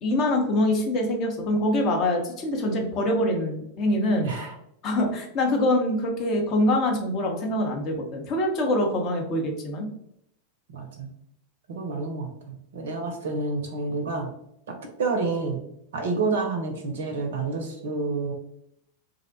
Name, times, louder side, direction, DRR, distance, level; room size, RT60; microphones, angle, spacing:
voice 1, 0.0-4.3 4.8-9.9, left 1 dB, 35° left, 2 dB, 0.6 m, -24 dB
voice 2, 10.7-11.1 11.7-14.3 14.7-15.6 15.9-18.3, right 3 dB, 60° right, 3 dB, 0.4 m, -29 dB
2.5 x 2.0 x 2.6 m, 0.75 s
figure-of-eight pair, 90°, 0 cm